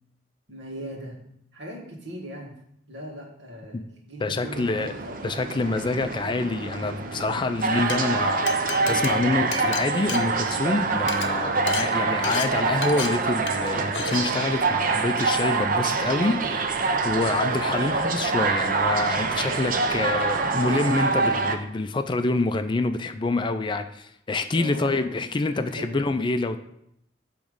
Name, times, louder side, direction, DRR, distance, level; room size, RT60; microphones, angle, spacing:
voice 1, 0.5-2.6 2.9-5.2 24.5-25.0 25.6-26.1, right 1 dB, 60° right, -1 dB, 1.7 m, -39 dB
voice 2, 4.2-4.9 5.2-26.6, left 3 dB, 25° left, 9 dB, 0.4 m, -26 dB
sound 1, 4.4-21.6, right 4 dB, 45° right, 0.6 m, -26 dB
Glass, 7.7-8.0 8.5-10.7 11.0-11.3 11.7-11.9 12.2-12.5 12.8-13.1 13.5-13.7 13.9-14.2, left 7 dB, 65° left, 0.8 m, -32 dB
8.6 x 3.1 x 6.4 m, 0.74 s
head